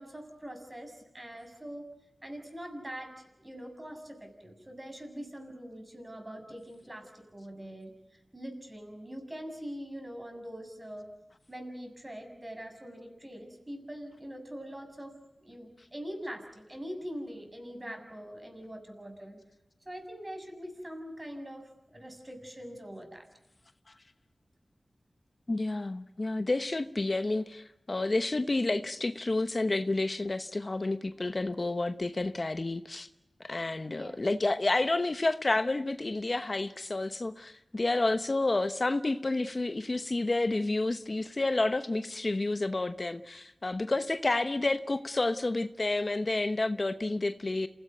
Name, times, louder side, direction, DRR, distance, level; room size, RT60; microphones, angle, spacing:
voice 1, 0.0-1.9 2.2-7.9 8.3-11.1 11.5-19.4 19.8-23.3 33.9-34.2, equal, 25° right, 7.0 m, -43 dB
voice 2, 25.5-33.1 33.4-47.7, left 2 dB, 45° left, 1.0 m, -30 dB
27.5 x 17.0 x 9.3 m
cardioid pair, 50°, 0 cm